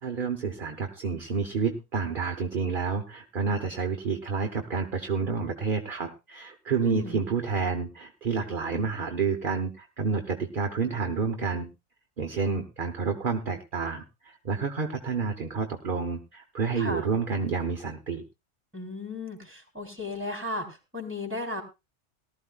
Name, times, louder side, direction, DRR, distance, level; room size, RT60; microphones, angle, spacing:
voice 1, 0.0-11.7 12.2-18.2, right 5 dB, 45° right, 4 dB, 1.2 m, -29 dB
voice 2, 6.8-7.2 16.8-17.0 18.7-21.6, left 2 dB, 10° right, 3 dB, 3.4 m, -35 dB
19.0 x 13.0 x 2.4 m, 0.26 s
omnidirectional pair, 1.3 m